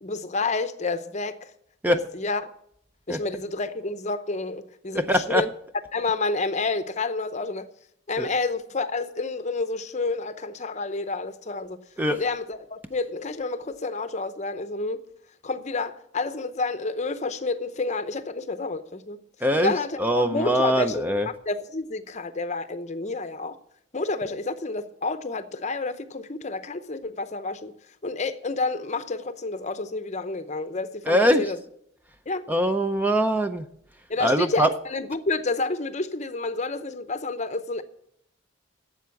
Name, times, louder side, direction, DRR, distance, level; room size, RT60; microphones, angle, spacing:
voice 1, 0.0-1.5 1.9-2.4 3.1-5.5 5.9-7.7 8.1-11.8 12.1-15.0 15.4-19.2 19.6-23.6 23.9-27.7 28.0-31.6 32.3-32.4 34.1-37.8, left 3 dB, 35° left, 0.7 m, -29 dB
voice 2, 4.9-5.4 8.2-8.3 12.0-12.2 19.4-21.3 31.1-31.5 32.5-33.6 34.2-34.7, equal, 10° right, 0.5 m, -22 dB
12.5 x 7.8 x 7.0 m
head